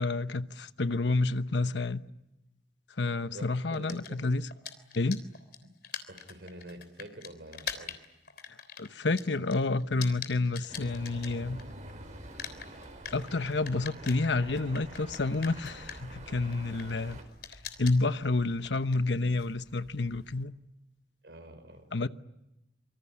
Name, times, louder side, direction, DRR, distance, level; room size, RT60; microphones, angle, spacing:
voice 1, 0.0-2.0 3.0-4.5 4.9-5.2 8.5-11.6 13.1-17.2 17.5-20.5 21.9-22.1, left 3 dB, 85° left, 1.0 m, -29 dB
voice 2, 3.3-4.3 6.1-7.9 21.2-21.9, right 1 dB, 65° right, 5.4 m, -47 dB
sound 1, 3.7-11.9 12.2-20.4, left 8 dB, 60° left, 3.5 m, -44 dB
sound 2, 10.7-17.2, right 1 dB, 45° right, 4.8 m, -46 dB
26.5 x 25.0 x 8.7 m
head